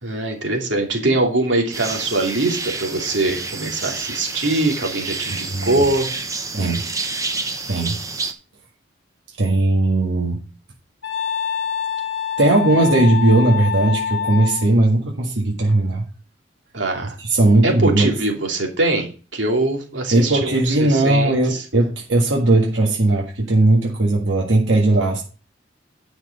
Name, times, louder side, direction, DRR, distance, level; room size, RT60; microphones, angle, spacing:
voice 1, 0.0-6.1 16.7-17.2 17.6-21.6, right 2 dB, 70° right, 2.8 m, -22 dB
sound 1, 1.7-8.3, right 3 dB, 20° right, 1.0 m, -29 dB
voice 2, 5.4-5.8 6.5-6.8 7.7-8.0 9.4-10.4 12.4-16.0 17.2-18.1 20.1-25.2, right 2 dB, 90° right, 1.7 m, -18 dB
Wind instrument woodwind instrument, 11.0-14.7, left 7 dB, 65° left, 1.1 m, -25 dB
10.0 x 5.9 x 5.2 m
head